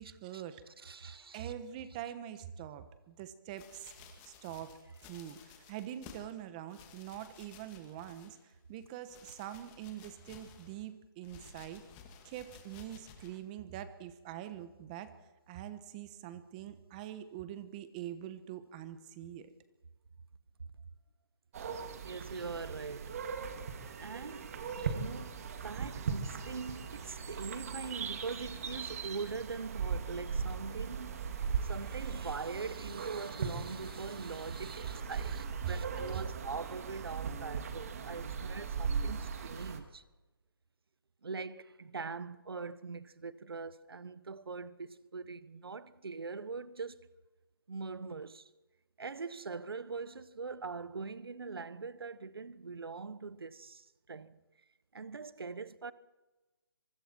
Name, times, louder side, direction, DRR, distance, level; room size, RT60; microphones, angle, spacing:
voice 1, 0.0-3.9 4.2-4.7 5.0-11.8 12.2-15.1 15.5-19.5 22.3-22.4 24.2-24.4 25.9-26.1 27.9-28.0 35.9-36.0, right 11 dB, 20° right, 1.2 m, -45 dB
voice 2, 0.8-1.5 22.0-23.3 24.0-40.0 41.2-47.1 47.7-48.5 49.0-54.4 54.9-55.9, right 4 dB, 80° right, 1.3 m, -42 dB
sound 1, 3.6-6.3 6.7-8.5 8.8-10.8 11.2-13.4 14.0-14.1, left 6 dB, 15° left, 2.3 m, -55 dB
sound 2, 21.5-39.8, right 6 dB, 40° right, 2.3 m, -39 dB
25.5 x 24.5 x 4.6 m
hypercardioid pair, 160°, 12 cm